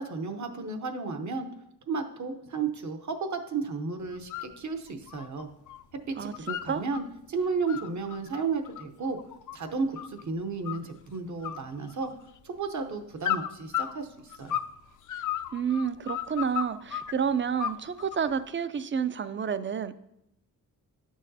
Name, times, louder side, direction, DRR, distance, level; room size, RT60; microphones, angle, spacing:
voice 1, 0.0-1.5 1.9-5.5 5.9-7.0 7.3-9.2 9.5-12.1 12.4-14.6, right 4 dB, 55° right, 7 dB, 0.9 m, -33 dB
sound 1, 4.1-4.5 4.9-5.8 6.1-7.0 7.5-10.2 10.6-11.1 11.4-12.4 13.2-14.8 15.1-17.1 17.6-18.3, left 11 dB, 60° left, 0.5 m, -34 dB
voice 2, 6.2-6.8 15.5-19.9, right 7 dB, 35° right, 14 dB, 0.4 m, -30 dB
9.6 x 6.3 x 2.7 m, 0.80 s
cardioid pair, 100°, 34 cm